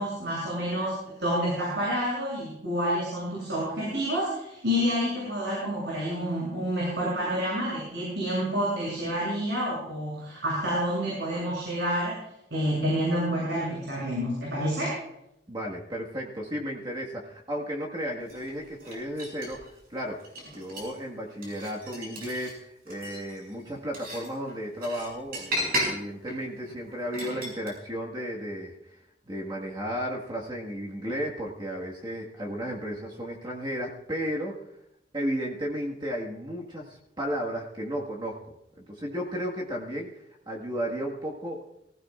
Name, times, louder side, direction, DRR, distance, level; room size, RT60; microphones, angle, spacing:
voice 1, 0.0-12.2 12.5-15.0, equal, 75° right, -6 dB, 7.8 m, -28 dB
voice 2, 15.5-20.2 20.5-28.9 29.3-34.6 35.1-41.6, equal, 25° right, -2 dB, 1.7 m, -34 dB
sound 1, 18.2-19.7 20.2-21.0 21.4-22.5 22.9-27.7, equal, 55° right, 6.7 m, -35 dB
24.0 x 16.0 x 2.5 m, 0.81 s
head